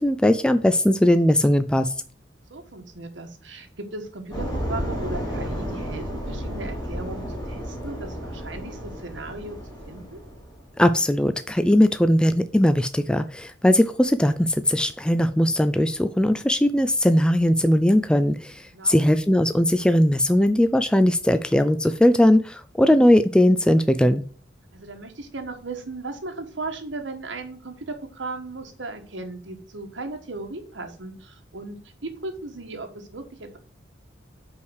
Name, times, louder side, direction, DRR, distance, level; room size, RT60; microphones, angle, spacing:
voice 1, 0.0-1.9 10.8-24.2, left 1 dB, 5° left, 10 dB, 0.3 m, -19 dB
voice 2, 2.5-9.6 9.9-10.2 18.7-19.1 24.7-33.6, right 2 dB, 85° right, 5 dB, 1.4 m, -36 dB
sound 1, 4.3-10.6, equal, 20° left, 2.9 m, -32 dB
5.6 x 4.8 x 6.4 m, 0.41 s
head